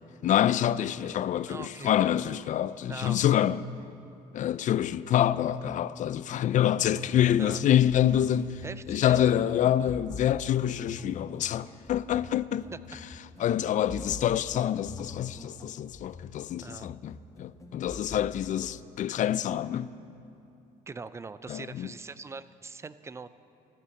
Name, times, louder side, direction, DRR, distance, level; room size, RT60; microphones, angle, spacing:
voice 1, 0.2-3.7 4.3-12.7 13.4-19.9 21.5-21.9, left 11 dB, 50° left, 0.4 m, -26 dB
voice 2, 1.5-2.0 2.9-3.5 7.4-7.6 8.6-9.3 12.7-12.8 16.6-16.9 20.9-23.3, right 4 dB, 15° right, 0.4 m, -42 dB
sound 1, 6.5-18.8, left 3 dB, 20° left, 0.9 m, -46 dB
13.5 x 9.8 x 7.1 m
cardioid pair, 110°, 17 cm